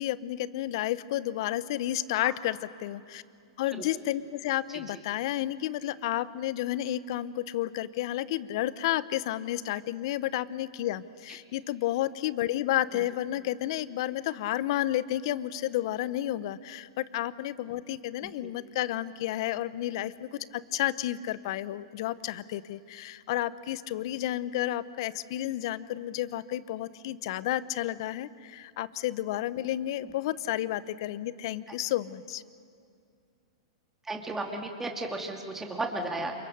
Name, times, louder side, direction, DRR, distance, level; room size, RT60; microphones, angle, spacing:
voice 1, 0.0-3.2 3.6-32.4, left 14 dB, 60° left, 17 dB, 0.8 m, -31 dB
voice 2, 18.2-18.5 34.1-36.3, right 2 dB, 10° right, 2 dB, 2.4 m, -34 dB
28.0 x 23.5 x 6.7 m, 2.3 s
hypercardioid pair, 120°, 3 cm